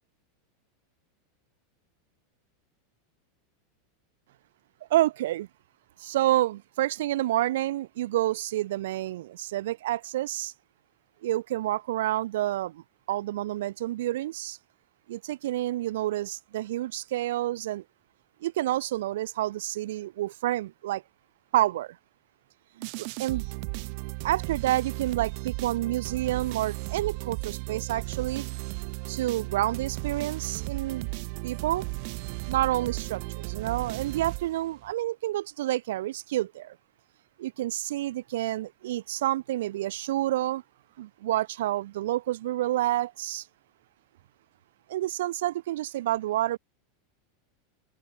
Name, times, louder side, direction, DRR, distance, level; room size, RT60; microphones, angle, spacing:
voice 1, 4.9-5.5 6.0-10.5 11.2-14.6 15.1-17.8 18.4-21.0 21.5-22.0 22.8-23.4 24.2-28.4 29.1-31.1 31.4-31.8 32.5-36.8 37.4-40.6 41.0-43.4 44.9-46.6, right 14 dB, 75° right, 1.5 m, -29 dB
sound 1, 22.8-34.9, right 38 dB, 45° right, 0.8 m, -35 dB
open air
supercardioid pair, 170°, 0 cm